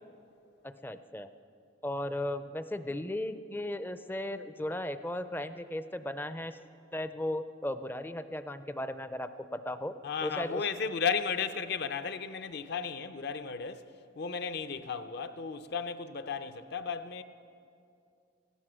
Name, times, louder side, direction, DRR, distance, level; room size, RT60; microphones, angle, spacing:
voice 1, 0.6-1.3 1.8-6.6 6.9-9.9 10.2-10.6, left 1 dB, 10° left, 0.4 m, -36 dB
voice 2, 10.0-13.8 14.2-17.2, left 6 dB, 55° left, 0.6 m, -34 dB
16.0 x 12.5 x 6.2 m
head